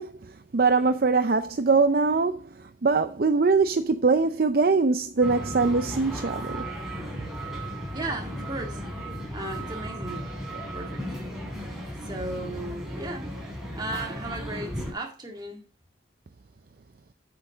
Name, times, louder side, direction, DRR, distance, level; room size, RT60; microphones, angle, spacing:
voice 1, 0.0-6.7, right 4 dB, 50° right, 0.5 m, -23 dB
sound 1, 5.2-14.9, equal, 5° right, 3.5 m, -35 dB
voice 2, 7.9-8.8 9.3-10.4 10.7-11.0 12.0-13.4 13.7-15.7, right 2 dB, 25° right, 2.0 m, -35 dB
8.1 x 7.7 x 3.9 m
head